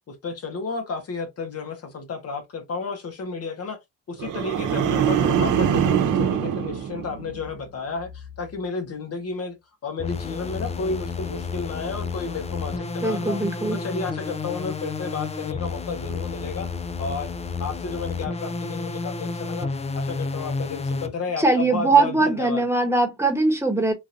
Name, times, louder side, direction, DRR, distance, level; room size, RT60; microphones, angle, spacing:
voice 1, 0.1-3.8 4.1-9.5 9.8-13.4 13.7-16.7 17.0-17.3 17.6-19.7 19.9-22.7, left 4 dB, 55° left, 1.2 m, -32 dB
sound 1, 4.2-7.6 8.0-8.4, right 8 dB, 80° right, 0.8 m, -23 dB
sound 2, 10.0-21.1, left 4 dB, 20° left, 0.4 m, -31 dB
voice 2, 13.0-13.8 21.4-23.9, right 3 dB, 10° right, 1.1 m, -21 dB
3.8 x 2.5 x 2.6 m
cardioid pair, 90°, 30 cm